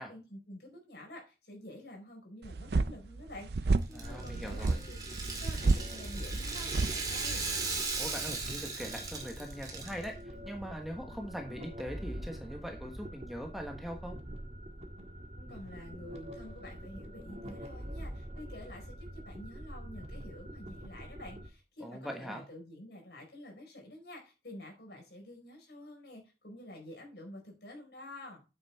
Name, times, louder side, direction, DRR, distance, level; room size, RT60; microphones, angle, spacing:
voice 1, 0.0-5.0 5.4-7.4 15.4-28.4, left 1 dB, 70° left, 2 dB, 4.7 m, -49 dB
sound 1, 2.4-7.8, right 3 dB, 70° right, 0.5 m, -32 dB
Rattle (instrument), 3.8-10.0, right 4 dB, 20° right, 2.1 m, -38 dB
voice 2, 3.9-4.8 8.0-14.1 21.8-22.4, equal, ahead, 3 dB, 1.2 m, -41 dB
sound 2, 4.0-21.5, equal, 35° right, 1.6 m, -45 dB
9.0 x 7.3 x 3.5 m, 0.29 s
head